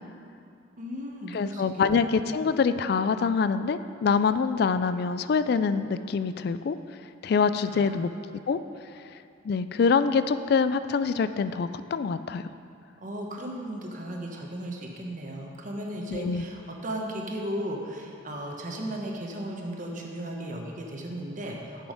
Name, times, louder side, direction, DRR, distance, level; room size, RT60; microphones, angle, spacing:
voice 1, 0.8-2.1 7.6-8.0 13.0-21.9, right 1 dB, 40° right, 0 dB, 1.0 m, -36 dB
voice 2, 1.3-6.8 7.2-8.1 8.5-8.6 9.4-12.4 16.1-16.4, left 5 dB, 55° left, 12 dB, 0.3 m, -25 dB
9.2 x 6.1 x 5.1 m, 2.5 s
head